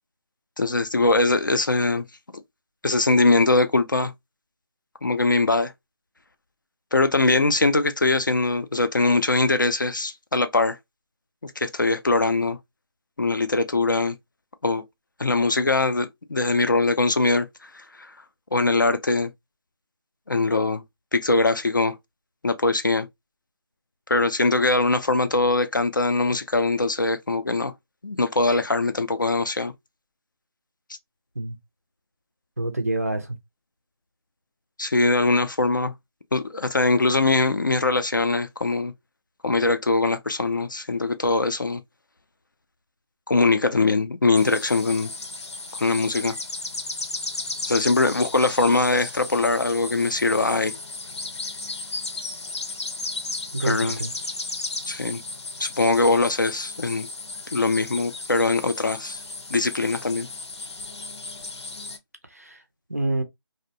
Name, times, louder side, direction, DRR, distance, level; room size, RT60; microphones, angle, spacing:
voice 1, 0.6-2.1 2.8-4.1 5.0-5.7 6.9-10.8 11.4-12.6 13.2-14.2 14.6-14.8 15.2-18.1 18.5-19.3 20.3-20.8 21.1-22.0 22.4-23.1 24.1-27.7 28.0-29.7 34.8-35.9 36.3-38.9 39.4-41.8 43.3-45.1 45.7-46.4 47.7-50.7 53.6-54.0 54.9-55.2 55.6-57.1 57.5-59.2 59.5-60.3, left 3 dB, 45° left, 0.4 m, -22 dB
voice 2, 32.6-33.4 53.5-54.1 62.3-62.6 62.9-63.2, right 2 dB, 35° right, 0.4 m, -27 dB
sound 1, 44.3-62.0, left 3 dB, 80° left, 0.7 m, -35 dB
2.6 x 2.0 x 2.6 m
figure-of-eight pair, 175°, 14 cm